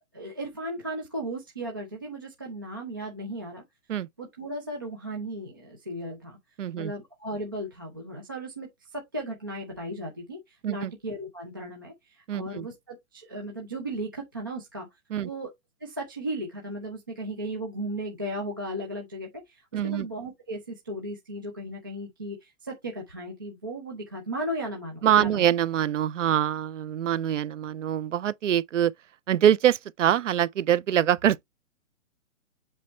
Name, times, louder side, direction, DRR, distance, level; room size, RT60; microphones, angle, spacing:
voice 1, 0.1-3.6 4.2-6.4 6.8-14.9 15.2-15.5 15.8-25.4, right 1 dB, 15° right, 0.6 m, -36 dB
voice 2, 6.6-6.9 10.6-10.9 12.3-12.7 15.1-15.3 19.7-20.1 25.0-28.9 29.3-31.4, right 10 dB, 65° right, 0.5 m, -24 dB
7.7 x 3.4 x 4.1 m
hypercardioid pair, 180°, 40 cm